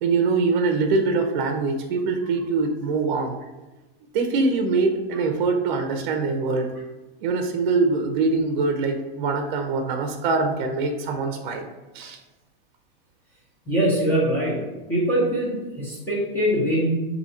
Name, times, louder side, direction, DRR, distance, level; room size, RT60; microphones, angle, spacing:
voice 1, 0.0-3.4 4.1-6.7 7.2-11.6 11.9-12.2, right 4 dB, 55° right, 5 dB, 0.7 m, -23 dB
voice 2, 13.7-14.6 14.9-16.9, right 1 dB, 10° left, -6 dB, 1.1 m, -22 dB
6.6 x 2.8 x 2.7 m, 1.1 s
supercardioid pair, 175°, 29 cm